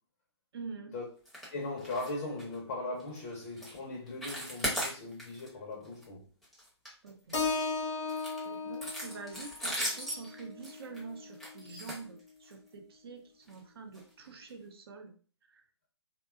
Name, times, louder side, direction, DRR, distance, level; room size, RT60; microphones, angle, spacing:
voice 1, 0.5-0.9 7.0-7.4 8.4-15.1 15.5-15.6, right 4 dB, 60° right, 0.7 m, -46 dB
sound 1, 1.2-1.5 1.8-2.1 2.4-2.6 3.0-3.2 3.6-3.8 4.1-5.5 5.8-6.0 6.4-7.5 8.1-12.7 13.4-13.6 13.9-14.0 14.5-14.6, equal, ahead, 0.7 m, -38 dB
voice 2, 1.5-6.3, left 2 dB, 35° left, 0.6 m, -39 dB
Keyboard (musical), 7.3-11.6, left 4 dB, 80° left, 0.7 m, -37 dB
2.7 x 2.2 x 2.3 m
figure-of-eight pair, 140°, 14 cm